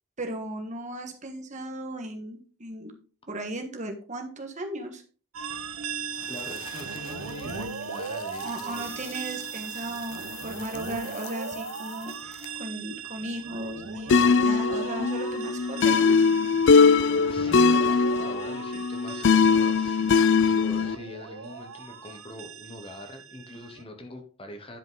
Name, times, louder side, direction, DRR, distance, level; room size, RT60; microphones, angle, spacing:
voice 1, 0.2-2.9 3.3-5.0 8.4-16.1, right 1 dB, 35° right, 4 dB, 1.5 m, -36 dB
sound 1, 5.3-23.8, right 5 dB, 80° right, 0.9 m, -39 dB
sound 2, 6.1-12.7, left 8 dB, 85° left, 1.0 m, -46 dB
voice 2, 6.3-9.0 16.8-24.8, left 1 dB, 25° left, 5 dB, 1.0 m, -42 dB
sound 3, 14.1-20.9, left 5 dB, 60° left, 0.4 m, -21 dB
10.5 x 5.1 x 3.9 m, 0.39 s
head